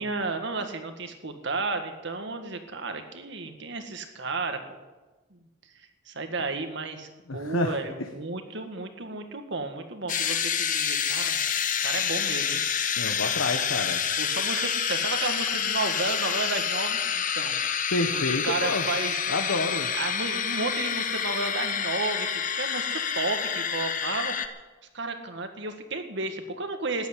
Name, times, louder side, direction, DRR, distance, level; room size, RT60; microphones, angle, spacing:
voice 1, 0.0-4.8 5.3-5.4 6.1-11.4 11.7-12.6 12.9-13.1 14.2-17.6 18.1-19.2 20.0-24.3 24.9-27.1, right 3 dB, 60° right, 6 dB, 1.8 m, -33 dB
voice 2, 7.3-7.8 13.0-14.0 17.9-18.8 19.3-19.9, left 2 dB, 90° left, 4 dB, 1.3 m, -28 dB
sound 1, 10.1-24.5, left 7 dB, 40° left, 1.0 m, -28 dB
14.5 x 10.5 x 8.5 m, 1.2 s
head